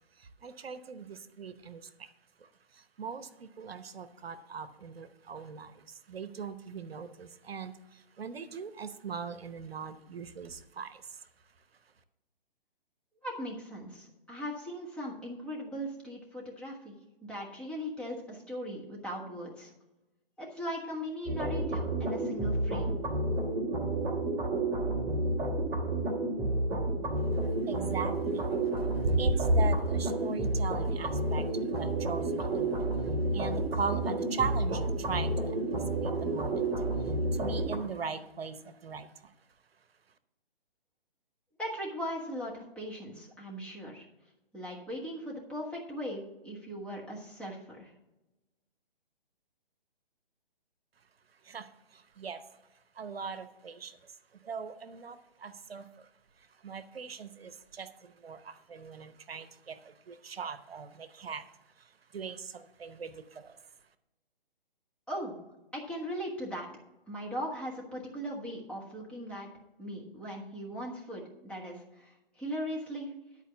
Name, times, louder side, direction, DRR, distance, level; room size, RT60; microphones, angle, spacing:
voice 1, 0.2-2.1 2.4-11.3 27.4-28.5 28.8-39.3 51.4-52.4 53.0-54.2 54.4-56.1 56.4-63.6, right 3 dB, 75° right, 12 dB, 0.9 m, -38 dB
voice 2, 13.2-19.7 20.4-23.0 41.6-44.1 44.5-47.9 65.1-65.4 65.7-66.7 67.1-69.5 69.8-73.1, equal, 5° left, -4 dB, 1.3 m, -39 dB
sound 1, 21.3-37.8, right 2 dB, 15° right, 1.6 m, -31 dB
11.0 x 4.6 x 7.1 m, 0.99 s
hypercardioid pair, 145°, 30 cm